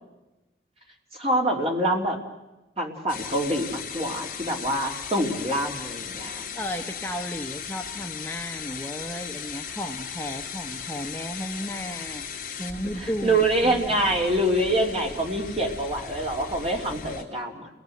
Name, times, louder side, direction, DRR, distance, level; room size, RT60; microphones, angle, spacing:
voice 1, 1.1-2.2 2.8-6.4 12.9-17.7, right 1 dB, 35° right, 1 dB, 3.2 m, -25 dB
sound 1, 3.1-17.2, left 6 dB, 45° left, 2.8 m, -37 dB
voice 2, 6.5-13.4 13.6-14.0, equal, 10° left, 3 dB, 1.0 m, -34 dB
29.0 x 19.0 x 7.9 m, 1.0 s
head